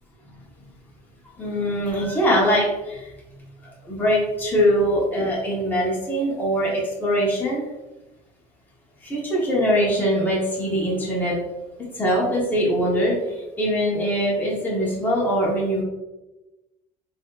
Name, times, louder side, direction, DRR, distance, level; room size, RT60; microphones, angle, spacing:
voice 1, 1.4-3.1 3.8-7.6 9.0-11.4 11.9-13.1 13.6-15.8, equal, 10° left, -5 dB, 0.9 m, -22 dB
4.0 x 2.7 x 2.3 m, 1.0 s
cardioid pair, 150°, 16 cm